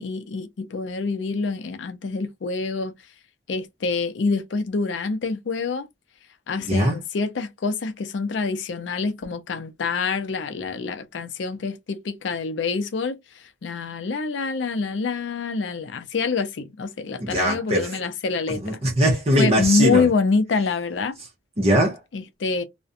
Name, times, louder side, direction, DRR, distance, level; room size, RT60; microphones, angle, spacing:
voice 1, 0.0-3.0 3.5-5.9 6.5-13.2 13.6-18.8 19.4-21.1 22.1-22.6, left 4 dB, 85° left, 0.5 m, -26 dB
voice 2, 6.7-7.0 17.2-17.9 18.6-20.1 21.6-22.0, equal, 35° right, 0.6 m, -21 dB
2.4 x 2.1 x 2.5 m
head